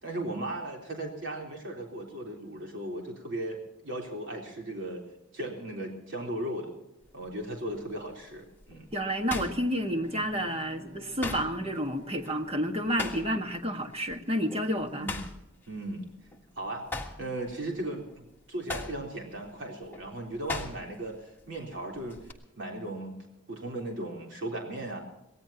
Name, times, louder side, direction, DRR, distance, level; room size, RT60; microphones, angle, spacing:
voice 1, 0.0-5.0 5.3-6.7 7.1-8.9 14.9-15.2 15.7-16.1 16.6-16.9 17.2-22.2 22.6-23.2 23.5-25.0, right 1 dB, 65° right, 0 dB, 3.6 m, -37 dB
sound 1, 7.0-7.4 7.9-10.4 10.7-13.6 13.9-14.2 14.5-16.5 16.8-21.1 21.4-22.3, left 2 dB, 10° left, 1.6 m, -39 dB
voice 2, 8.9-15.1, equal, 30° right, 5 dB, 1.6 m, -30 dB
Bowed string instrument, 9.3-14.4, equal, 80° right, 6.6 m, -52 dB
24.0 x 18.0 x 2.9 m, 0.87 s
head